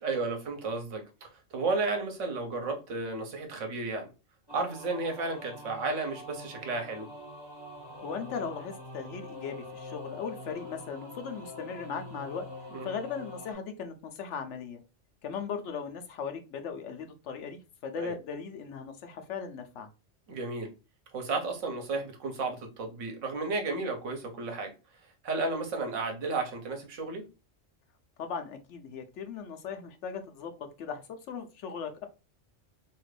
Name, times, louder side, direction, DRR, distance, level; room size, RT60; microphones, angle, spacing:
voice 1, 0.0-4.1 4.5-7.1 12.7-12.9 17.9-18.1 20.3-20.7 21.1-24.7 25.2-27.2, right 3 dB, 80° right, 1.2 m, -33 dB
sound 1, 4.5-13.5, left 1 dB, 20° right, 1.4 m, -44 dB
voice 2, 8.0-12.5 12.8-14.8 15.2-19.9 28.2-32.1, left 6 dB, 75° left, 0.9 m, -38 dB
2.9 x 2.4 x 3.1 m
omnidirectional pair, 1.3 m